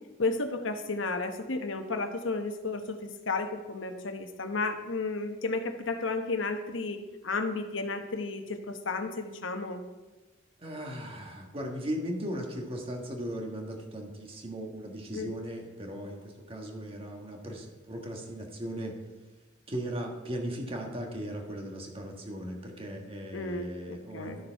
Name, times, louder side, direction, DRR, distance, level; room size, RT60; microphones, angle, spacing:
voice 1, 0.2-9.8 15.1-15.3 23.3-24.4, left 3 dB, 75° left, 6 dB, 1.0 m, -33 dB
voice 2, 10.6-19.0 19.7-24.5, equal, 30° right, 1 dB, 1.5 m, -37 dB
12.5 x 6.7 x 4.6 m, 1.2 s
head